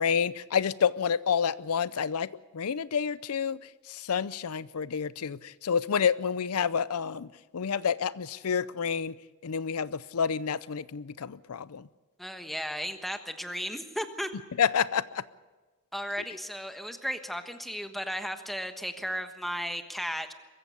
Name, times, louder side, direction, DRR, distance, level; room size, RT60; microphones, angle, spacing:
voice 1, 0.0-3.6 3.9-9.1 9.4-11.8 14.6-15.2, left 7 dB, 80° left, 0.5 m, -29 dB
voice 2, 12.2-14.3 15.9-20.3, equal, ahead, 1.2 m, -35 dB
23.0 x 15.0 x 8.1 m
head